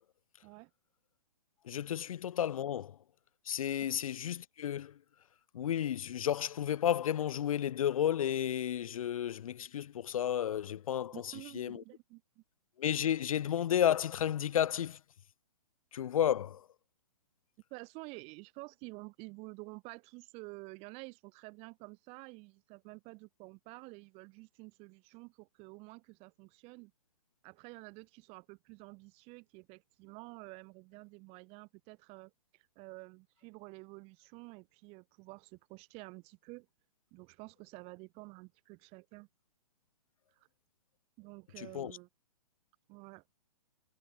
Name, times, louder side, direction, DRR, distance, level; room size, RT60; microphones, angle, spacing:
voice 1, 1.6-3.0 3.5-4.9 5.5-11.8 12.8-15.0 15.9-16.7 41.6-41.9, left 10 dB, 60° left, 1.0 m, -32 dB
voice 2, 11.1-12.4 17.7-26.9 27.4-36.7 37.1-39.3 41.2-42.1 42.9-43.2, right 27 dB, 30° right, 2.8 m, -50 dB
hypercardioid pair, 130°, 20 cm